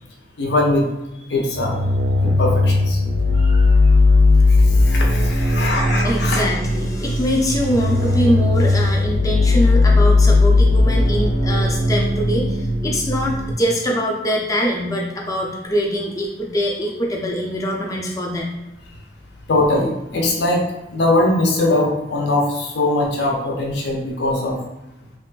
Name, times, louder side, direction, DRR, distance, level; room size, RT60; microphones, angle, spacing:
voice 1, 0.4-0.9 1.3-1.8 2.2-3.0 3.4-3.7 4.5-6.5 19.5-20.6 20.9-24.6, left 2 dB, 65° left, -1 dB, 0.5 m, -21 dB
sound 1, 1.6-13.5, left 2 dB, 75° right, 0.4 m, -17 dB
voice 2, 6.0-18.5, equal, 20° left, 0 dB, 0.4 m, -23 dB
2.9 x 2.3 x 2.3 m, 0.92 s
head